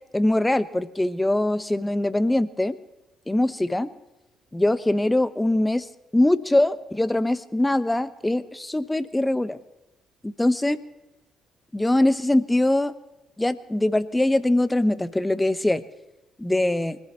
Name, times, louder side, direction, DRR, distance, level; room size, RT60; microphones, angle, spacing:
voice 1, 0.1-2.8 3.3-3.9 4.5-5.9 6.1-9.6 10.2-10.8 11.7-12.9 13.4-15.8 16.4-17.0, left 1 dB, 10° left, 13 dB, 1.1 m, -22 dB
24.5 x 14.5 x 3.0 m, 0.98 s
figure-of-eight pair, 45°, 0 cm